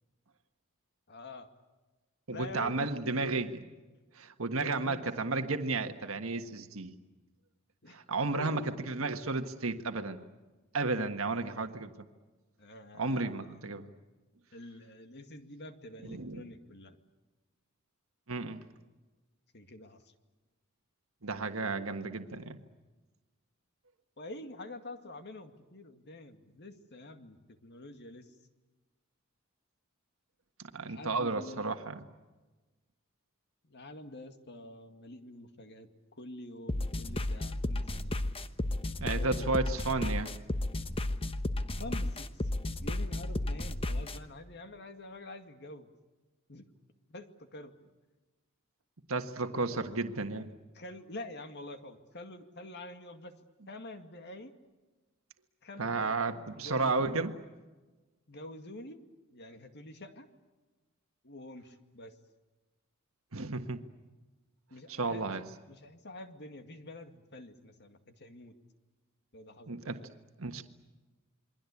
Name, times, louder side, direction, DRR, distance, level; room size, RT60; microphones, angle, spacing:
voice 1, 1.1-1.5 2.3-3.5 4.6-5.5 7.8-8.0 8.4-8.7 11.0-11.7 12.6-13.6 14.5-17.0 19.5-20.1 24.2-28.3 30.9-31.7 33.7-38.2 39.2-39.5 41.7-42.5 42.8-45.9 46.5-46.7 47.1-47.7 50.7-53.3 53.7-54.5 55.6-56.2 56.6-57.2 58.3-59.0 59.3-60.3 61.2-62.1 64.7-65.4 65.7-68.5 69.3-70.1, left 1 dB, 55° left, 7 dB, 2.2 m, -47 dB
voice 2, 2.3-3.6 4.1-6.9 7.9-8.6 8.9-10.2 10.7-11.9 13.0-13.9 16.0-16.4 18.3-18.6 21.2-22.6 30.6-32.0 39.0-40.3 49.1-50.5 55.8-57.3 63.3-63.8 64.9-65.4 69.7-70.0 70.4-70.6, right 3 dB, 75° right, 6 dB, 1.6 m, -33 dB
sound 1, 36.7-44.2, left 1 dB, 25° left, 1.0 m, -33 dB
28.0 x 22.5 x 8.5 m, 1.2 s
head